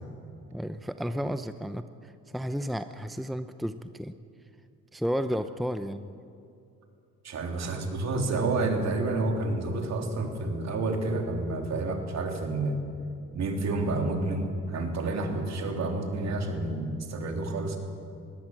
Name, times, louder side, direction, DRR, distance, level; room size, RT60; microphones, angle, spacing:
voice 1, 0.5-4.1 4.9-6.1, equal, ahead, 10 dB, 0.7 m, -32 dB
voice 2, 7.2-12.8 13.3-17.8, right 2 dB, 60° right, 3 dB, 3.5 m, -29 dB
21.5 x 17.5 x 7.5 m, 2.5 s
cardioid pair, 90°, 30 cm